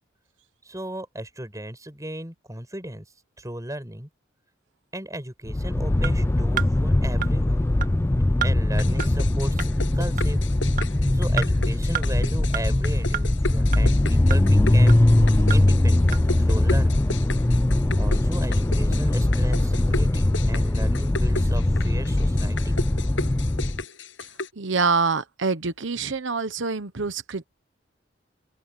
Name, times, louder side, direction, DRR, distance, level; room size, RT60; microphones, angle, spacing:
voice 1, 0.6-3.1 3.4-4.1 4.9-7.7 8.4-10.4 11.1-15.0 15.4-17.1 18.0-22.8, right 1 dB, 15° right, 6.9 m, -35 dB
sound 1, 5.5-23.8, left 1 dB, 15° left, 0.4 m, -21 dB
sound 2, 6.0-6.1 6.6-6.7 7.2-7.3 7.8-7.9 8.4-8.5 9.0-9.1 9.6-9.7 10.2-10.3 10.8-10.9 11.4-11.5 11.9-12.1 12.5-12.6 13.1-13.2 13.7-13.8 14.3-14.4 14.9-15.0 15.5-15.6 16.1-16.2, right 9 dB, 45° right, 2.0 m, -29 dB
sound 3, 8.8-24.5, left 3 dB, 85° left, 7.9 m, -35 dB
voice 2, 24.6-27.4, right 4 dB, 80° right, 1.1 m, -25 dB
open air
head